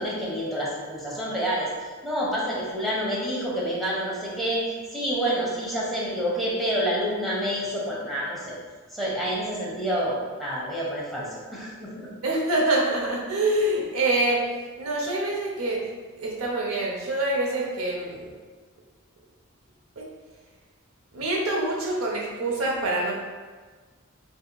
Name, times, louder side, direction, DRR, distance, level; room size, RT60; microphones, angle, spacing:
voice 1, 0.0-1.7 2.0-4.6 4.9-8.5 8.9-12.1, equal, ahead, -6 dB, 0.7 m, -28 dB
voice 2, 12.2-14.5 14.8-15.8 16.2-18.3 21.1-23.1, right 2 dB, 85° right, -2 dB, 0.7 m, -25 dB
4.1 x 2.8 x 2.2 m, 1.4 s
head